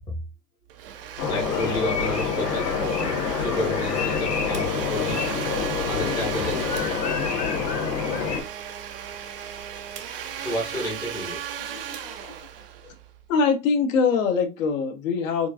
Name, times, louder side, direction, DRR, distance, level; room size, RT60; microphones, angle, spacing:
Domestic sounds home sounds, 0.7-13.3, right 9 dB, 40° right, 0.4 m, -36 dB
sound 1, 1.2-8.4, left 6 dB, 75° left, 1.4 m, -26 dB
voice 1, 1.3-5.2 5.9-6.7 10.4-11.5, left 1 dB, 10° left, 0.7 m, -31 dB
voice 2, 11.7-12.4 12.8-12.9 13.3-15.5, left 5 dB, 55° left, 0.8 m, -24 dB
4.4 x 2.3 x 2.5 m
supercardioid pair, 155°, 48 cm